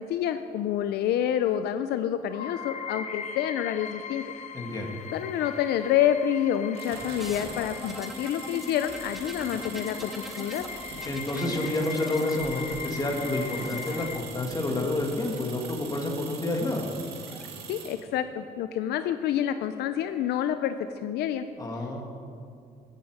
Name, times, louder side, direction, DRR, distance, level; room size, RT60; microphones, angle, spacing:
voice 1, 0.0-4.2 5.1-10.6 17.7-20.8 21.0-21.5, left 10 dB, 75° left, 10 dB, 0.5 m, -28 dB
sound 1, 2.3-14.2, left 7 dB, 45° left, 0.8 m, -40 dB
voice 2, 4.5-4.9 11.1-16.9 21.6-22.0, left 2 dB, 20° left, 1 dB, 2.2 m, -29 dB
sound 2, 6.7-18.0, right 6 dB, 75° right, 1.9 m, -43 dB
sound 3, 7.2-15.7 16.9-17.5, left 1 dB, ahead, 1.0 m, -42 dB
16.5 x 8.3 x 4.9 m, 2.4 s
cardioid pair, 110°, 17 cm